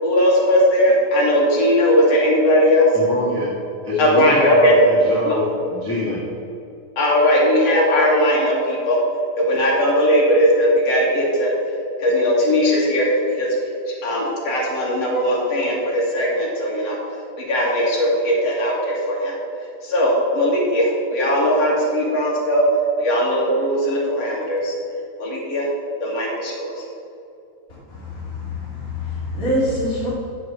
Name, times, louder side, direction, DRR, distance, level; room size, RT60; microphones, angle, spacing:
voice 1, 0.0-2.9 4.0-4.7 5.3-5.4 7.0-9.0 9.4-11.5 12.0-13.5 14.0-17.0 17.4-19.3 19.8-22.6 23.0-24.7 25.2-25.7 26.0-26.7, equal, 55° left, -3 dB, 3.0 m, -18 dB
voice 2, 2.9-3.5 3.8-6.2, left 1 dB, 10° left, -8 dB, 1.3 m, -25 dB
voice 3, 27.9-30.1, left 1 dB, 30° left, -9 dB, 2.5 m, -25 dB
7.9 x 7.9 x 6.9 m, 2.6 s
omnidirectional pair, 3.6 m